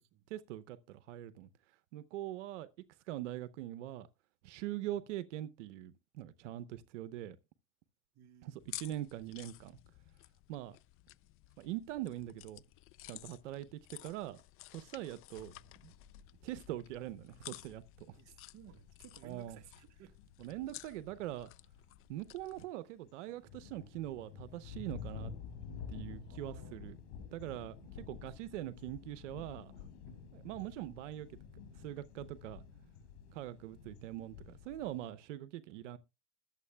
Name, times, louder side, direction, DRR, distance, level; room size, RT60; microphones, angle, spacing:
voice 1, 0.3-1.5 1.9-2.7 3.1-4.1 4.4-7.4 8.4-9.8 10.5-10.8 11.6-12.6 13.1-14.4 14.7-15.5 15.8-15.9 16.4-18.2 19.2-19.6 20.4-21.5 22.1-25.3 25.9-27.0 27.3-29.7 30.3-31.4 31.7-32.6 33.3-36.0, right 13 dB, 90° right, 0.8 m, -43 dB
voice 2, 8.1-8.6 13.5-13.7 18.2-20.1 26.2-26.9 30.1-30.2 32.7-32.9, right 11 dB, 50° right, 1.3 m, -58 dB
sound 1, 8.6-22.7, left 17 dB, 40° left, 0.4 m, -54 dB
sound 2, 15.4-22.6 23.0-35.1, left 7 dB, 85° left, 3.9 m, -51 dB
21.0 x 7.4 x 2.2 m
supercardioid pair, 110°, 35 cm